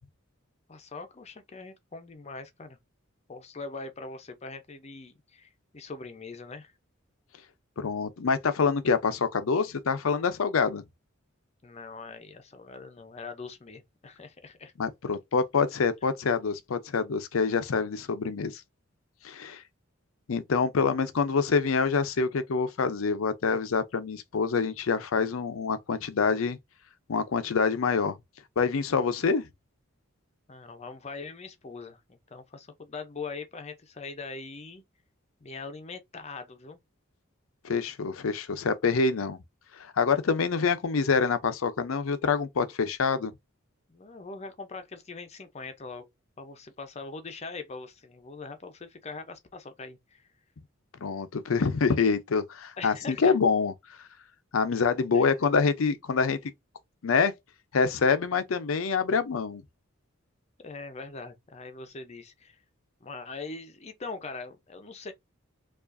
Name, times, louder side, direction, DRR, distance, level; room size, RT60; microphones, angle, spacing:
voice 1, 0.7-2.8 3.3-6.7 11.6-14.7 30.5-34.8 35.4-36.8 43.9-46.1 46.4-50.3 52.8-53.4 55.1-55.3 60.6-62.6 63.0-65.1, left 4 dB, 30° left, 0.6 m, -42 dB
voice 2, 7.8-10.8 14.8-18.6 19.2-19.6 20.3-26.6 27.1-28.2 28.6-29.5 37.6-39.4 39.8-43.3 51.0-53.7 54.5-56.4 57.0-57.3 57.7-59.6, left 5 dB, 80° left, 0.5 m, -26 dB
4.6 x 2.4 x 2.5 m
head